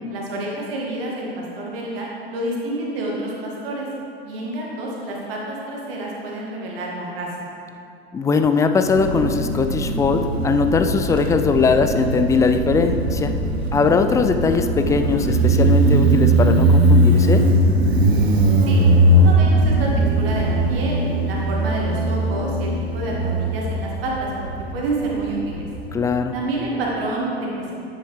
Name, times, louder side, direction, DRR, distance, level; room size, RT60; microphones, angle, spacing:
voice 1, 0.1-3.9 4.2-7.3 18.6-18.8 19.1-25.7 26.3-27.8, right 2 dB, 60° right, -3 dB, 2.1 m, -28 dB
voice 2, 8.1-13.3 13.7-17.4 25.9-26.3, left 4 dB, 10° left, 7 dB, 0.3 m, -20 dB
Motorcycle, 8.9-26.1, right 1 dB, 75° right, 0.9 m, -19 dB
10.0 x 9.1 x 3.3 m, 2.5 s
figure-of-eight pair, 75°, 32 cm